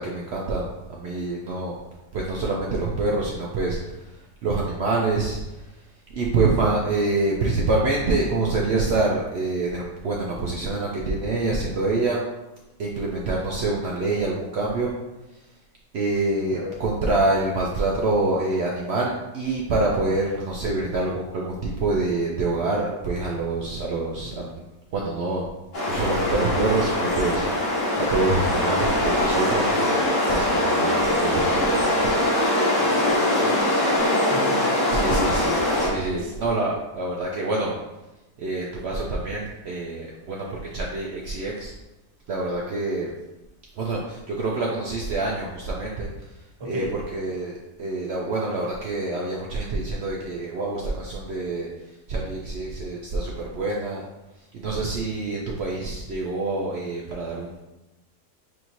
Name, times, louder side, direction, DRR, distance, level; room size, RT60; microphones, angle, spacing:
voice 1, 0.0-1.7 2.1-5.7 6.1-12.2 12.8-14.9 15.9-24.6 24.9-25.5 25.9-30.0 30.3-32.0 34.2-34.3 34.9-37.7 38.4-41.7 42.3-43.1 43.8-46.1 46.6-46.8 47.1-47.5 47.8-51.7 52.1-54.0 54.5-57.6, right 2 dB, 85° right, -3 dB, 0.5 m, -26 dB
sound 1, 25.7-35.9, left 1 dB, 85° left, 2.3 m, -22 dB
voice 2, 32.8-35.3 36.1-36.3 46.6-46.9, equal, 35° right, -2 dB, 0.4 m, -35 dB
6.2 x 2.7 x 3.0 m, 1.0 s
omnidirectional pair, 1.8 m